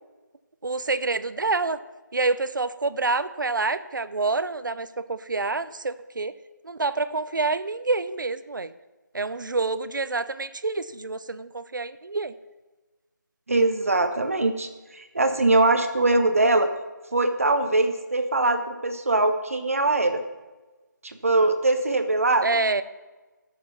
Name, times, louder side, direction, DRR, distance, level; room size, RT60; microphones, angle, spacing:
voice 1, 0.6-1.8 2.1-6.3 6.6-8.7 9.1-12.3 22.4-22.8, right 3 dB, 75° right, 14 dB, 0.7 m, -27 dB
voice 2, 13.5-14.7 14.9-16.7 17.1-20.2 21.0-22.5, right 2 dB, 45° right, 8 dB, 1.0 m, -22 dB
12.5 x 6.8 x 5.9 m, 1.2 s
figure-of-eight pair, 180°, 11 cm